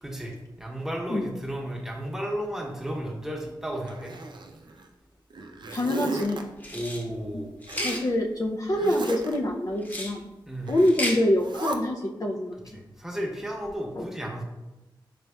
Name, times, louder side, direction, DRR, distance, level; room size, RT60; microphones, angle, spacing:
voice 1, 0.0-4.1 6.7-8.0 10.5-10.7 12.7-14.4, equal, 5° right, -1 dB, 0.9 m, -34 dB
Zipper (clothing), 3.9-4.9 5.3-6.4 7.7-8.1 8.7-9.4 10.7-11.0 11.4-11.8, right 2 dB, 60° right, 0.5 m, -35 dB
voice 2, 5.7-6.4 7.8-10.2 10.7-12.6 14.0-14.1, left 1 dB, 40° left, 1 dB, 0.4 m, -25 dB
sound 1, 6.6-7.0 7.6-8.0 9.8-10.1 10.8-11.2, left 1 dB, 20° left, 0.9 m, -32 dB
5.3 x 3.3 x 2.3 m, 1.0 s
cardioid pair, 50°, 9 cm